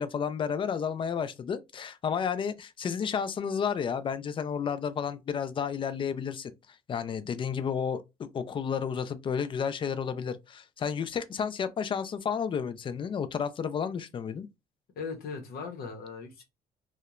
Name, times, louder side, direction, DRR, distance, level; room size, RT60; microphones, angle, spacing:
voice 1, 0.0-6.5 6.9-14.5, left 7 dB, 30° left, 0.3 m, -31 dB
voice 2, 15.0-16.4, left 5 dB, 65° left, 0.7 m, -38 dB
2.3 x 2.1 x 2.9 m
cardioid pair, 110°, 17 cm